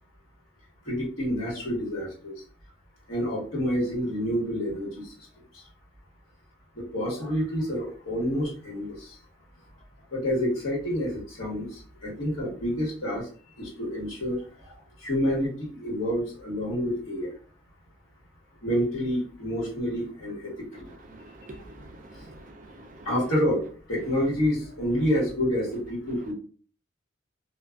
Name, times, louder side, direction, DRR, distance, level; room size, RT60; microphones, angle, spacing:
voice 1, 0.8-2.4 3.1-5.1 5.5-5.6 6.7-9.1 10.1-13.3 13.6-17.4 18.6-20.9 23.0-26.3, equal, 80° left, -5 dB, 1.3 m, -28 dB
voice 2, 21.1-23.1, right 2 dB, 40° right, 4 dB, 0.3 m, -47 dB
2.4 x 2.3 x 2.2 m, 0.42 s
head